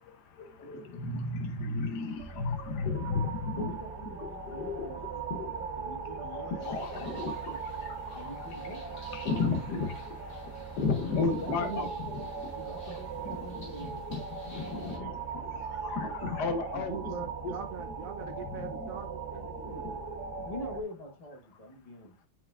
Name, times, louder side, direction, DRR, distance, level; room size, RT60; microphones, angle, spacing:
voice 1, 0.0-3.6 4.2-4.9 5.3-5.6 6.3-8.3 9.1-12.5 13.3-17.5 18.3-18.9 19.5-20.1, left 4 dB, 65° left, 1.3 m, -35 dB
sound 1, 2.2-20.8, right 5 dB, 55° right, 2.0 m, -39 dB
voice 2, 3.6-7.6 8.1-9.0 11.2-12.3 12.5-14.0 14.6-15.2 20.4-22.1, left 1 dB, 25° left, 0.8 m, -44 dB
sound 2, 6.6-15.0, left 1 dB, 50° left, 3.1 m, -54 dB
voice 3, 11.5-11.8 16.7-19.8, right 7 dB, 85° right, 0.7 m, -42 dB
7.5 x 5.8 x 2.3 m
omnidirectional pair, 2.1 m